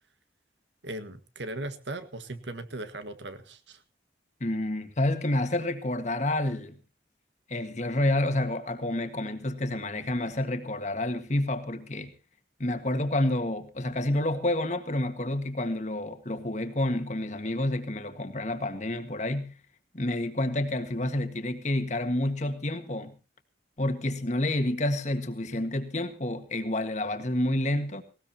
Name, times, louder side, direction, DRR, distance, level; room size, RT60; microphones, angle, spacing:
voice 1, 0.8-3.8, right 2 dB, 80° right, 10 dB, 1.6 m, -38 dB
voice 2, 4.4-6.8 7.5-12.1 12.6-19.5 19.9-23.1 23.8-28.0, left 1 dB, 40° left, 8 dB, 1.6 m, -29 dB
19.0 x 18.0 x 2.8 m, 0.34 s
head